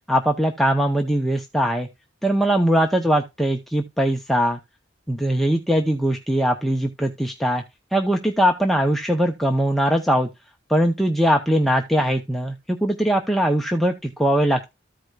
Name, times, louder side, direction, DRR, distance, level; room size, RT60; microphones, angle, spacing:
voice 1, 0.1-1.9 2.2-4.6 5.1-7.6 7.9-10.3 10.7-14.7, equal, ahead, 0.6 m, -21 dB
14.0 x 4.9 x 2.3 m
head